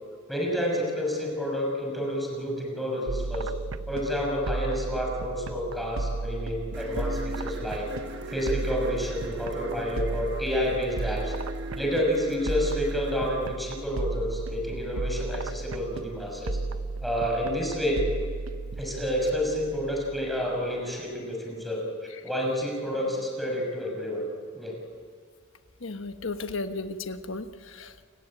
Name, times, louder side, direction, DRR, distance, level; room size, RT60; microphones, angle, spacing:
voice 1, 0.3-3.5 3.9-7.9 8.3-11.3 11.8-16.6 17.0-18.0 18.8-21.8 22.2-24.2 24.5-24.8, equal, ahead, -1 dB, 6.2 m, -29 dB
sound 1, 3.1-20.7, right 3 dB, 90° right, 0.8 m, -34 dB
sound 2, 6.7-13.6, equal, 60° right, 1.6 m, -41 dB
voice 2, 25.8-28.0, left 3 dB, 70° left, 8 dB, 1.3 m, -35 dB
29.0 x 19.5 x 9.0 m, 2.1 s
head